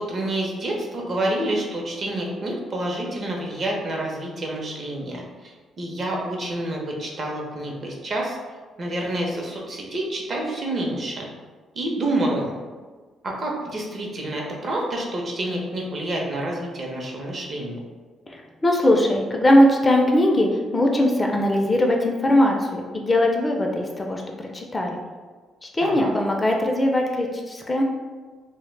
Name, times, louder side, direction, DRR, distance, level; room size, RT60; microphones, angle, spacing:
voice 1, 0.0-8.4 8.8-11.3 11.7-12.5 13.2-17.8 25.8-26.1, right 1 dB, 45° right, -1 dB, 0.6 m, -28 dB
voice 2, 18.3-25.0 25.6-27.8, left 1 dB, 25° left, 1 dB, 0.3 m, -20 dB
2.1 x 2.1 x 3.1 m, 1.4 s
cardioid pair, 90°, 0 cm